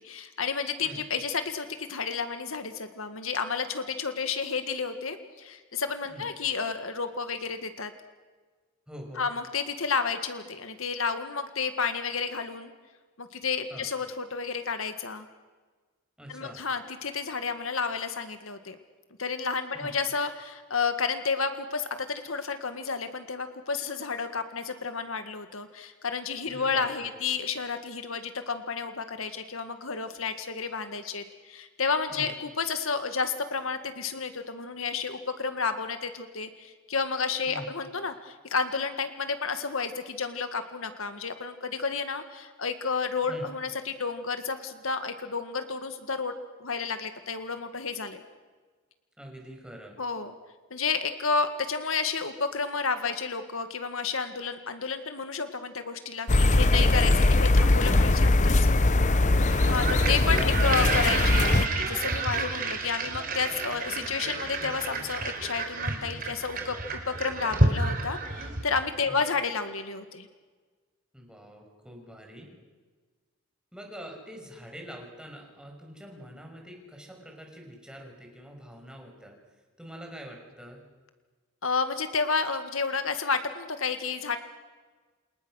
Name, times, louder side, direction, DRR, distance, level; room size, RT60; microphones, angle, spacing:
voice 1, 0.0-7.9 9.2-12.7 13.2-15.3 16.3-18.8 19.2-46.3 46.6-48.2 50.0-50.3 50.7-58.7 59.7-70.3 81.6-84.4, left 5 dB, 75° left, 8 dB, 1.9 m, -31 dB
voice 2, 8.9-9.3 13.7-13.9 16.2-16.6 19.7-19.9 26.5-27.1 32.1-32.3 37.5-37.7 43.3-43.5 49.2-50.0 59.4-59.6 69.1-69.2 71.1-72.5 73.7-79.3 79.8-80.8, equal, 5° right, 1 dB, 5.9 m, -45 dB
sound 1, 56.3-61.7, left 2 dB, 35° left, 0.8 m, -21 dB
sound 2, 59.5-68.8, right 2 dB, 45° right, 3.8 m, -30 dB
29.0 x 28.5 x 6.4 m, 1.4 s
head